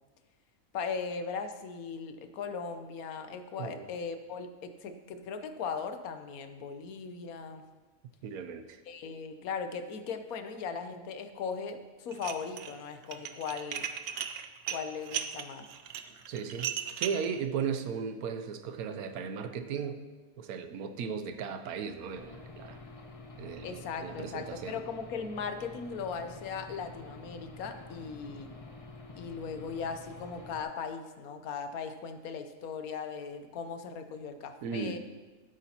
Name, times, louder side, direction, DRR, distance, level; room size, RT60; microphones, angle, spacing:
voice 1, 0.7-7.6 8.9-13.8 14.7-15.7 23.6-28.5 29.2-35.0, left 5 dB, 75° left, 8 dB, 1.2 m, -38 dB
voice 2, 8.2-8.8 16.3-20.0 20.4-22.8 23.4-24.8 34.6-35.0, right 6 dB, 85° right, 8 dB, 1.2 m, -36 dB
Dishes pots and pans, 12.1-12.7 13.0-17.3, right 8 dB, 65° right, 0.6 m, -36 dB
Aircraft / Engine, 22.2-30.6, left 3 dB, 30° left, 0.6 m, -48 dB
14.0 x 8.1 x 2.9 m, 1.3 s
omnidirectional pair, 1.5 m